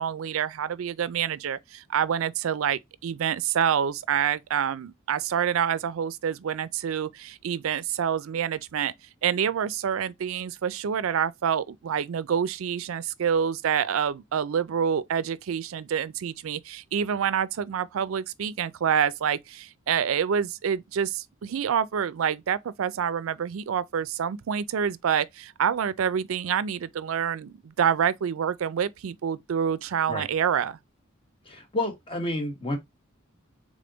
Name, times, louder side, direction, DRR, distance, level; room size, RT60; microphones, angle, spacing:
voice 1, 0.0-8.9 9.2-30.8, right 8 dB, 80° right, 0.4 m, -27 dB
voice 2, 31.5-32.8, left 1 dB, 25° left, 1.1 m, -30 dB
3.7 x 3.5 x 3.8 m
head